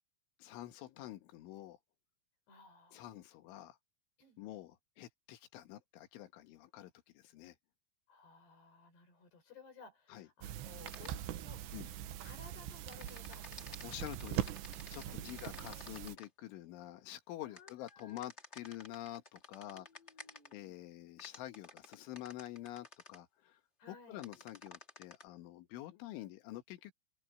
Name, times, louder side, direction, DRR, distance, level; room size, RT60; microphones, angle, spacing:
voice 1, 0.4-1.8 2.9-3.8 4.4-7.6 10.1-10.3 11.7-11.9 13.8-14.5 14.9-19.9 20.5-23.5 23.9-26.9, left 14 dB, 90° left, 3.9 m, -48 dB
voice 2, 2.5-3.1 4.2-4.4 8.1-11.8 12.2-14.0 15.1-15.9 17.4-18.3 19.6-20.8 23.8-24.2, left 4 dB, 60° left, 8.0 m, -59 dB
sound 1, 10.4-16.2, right 12 dB, 75° right, 3.2 m, -42 dB
sound 2, 10.9-11.1 12.9-16.3 17.5-20.5 21.2-23.2 24.2-25.2, left 3 dB, 35° left, 1.1 m, -52 dB
open air
omnidirectional pair, 5.4 m